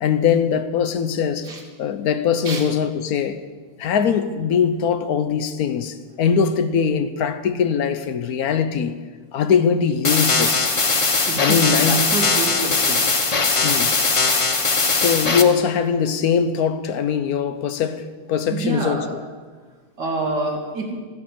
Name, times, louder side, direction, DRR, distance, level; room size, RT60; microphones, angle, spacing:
voice 1, 0.0-1.5 1.8-3.4 3.8-9.0 9.3-10.8 11.4-12.1 13.6-14.0 14.9-19.2, left 7 dB, 65° left, 1.2 m, -21 dB
sound 1, 10.0-15.4, left 3 dB, 35° left, 0.5 m, -20 dB
voice 2, 11.3-13.0 18.5-19.1 20.0-21.0, right 2 dB, 75° right, 2.8 m, -27 dB
14.0 x 9.3 x 7.5 m
omnidirectional pair, 1.9 m